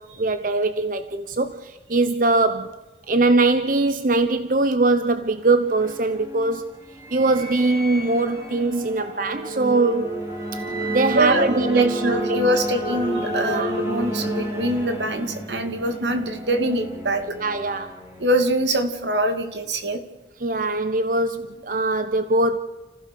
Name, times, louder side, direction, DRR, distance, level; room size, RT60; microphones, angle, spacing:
voice 1, 0.0-2.7 3.1-6.6 7.1-10.1 10.5-10.6 10.9-12.4 12.8-13.0 13.5-13.7 17.3-18.0 20.4-22.6, right 2 dB, 50° right, 10 dB, 0.9 m, -22 dB
sound 1, 5.2-18.8, right 1 dB, 15° right, 4.9 m, -31 dB
voice 2, 11.1-17.3 18.2-20.0, right 1 dB, 80° right, 7 dB, 2.7 m, -24 dB
30.0 x 16.0 x 6.8 m, 1.1 s
head